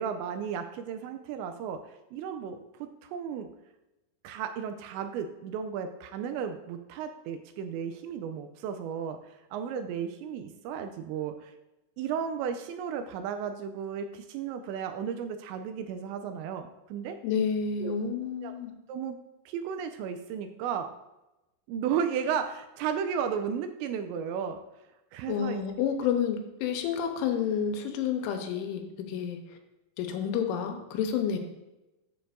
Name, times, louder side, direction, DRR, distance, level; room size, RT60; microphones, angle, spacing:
voice 1, 0.0-3.5 4.2-11.5 12.0-17.2 17.8-17.9 18.4-18.6 18.9-19.2 19.5-20.9 21.7-24.6 25.1-25.9, right 7 dB, 85° right, 8 dB, 2.7 m, -34 dB
voice 2, 17.2-18.7 25.3-28.8 29.1-29.4 30.0-31.4, left 7 dB, 85° left, 5 dB, 3.3 m, -29 dB
12.0 x 7.1 x 2.6 m, 0.99 s
omnidirectional pair, 5.4 m